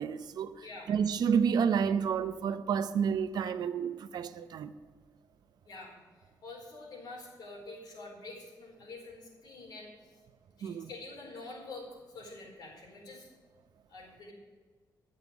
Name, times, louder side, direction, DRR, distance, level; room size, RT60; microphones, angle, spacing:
voice 1, 0.0-0.5 0.9-4.7 10.6-10.9, right 7 dB, 70° right, 0.7 m, -30 dB
voice 2, 5.6-6.0 6.4-9.9 10.6-13.3 13.9-14.3, left 2 dB, 70° left, 4.4 m, -46 dB
12.5 x 7.4 x 8.1 m
wide cardioid pair, 165°, 7 cm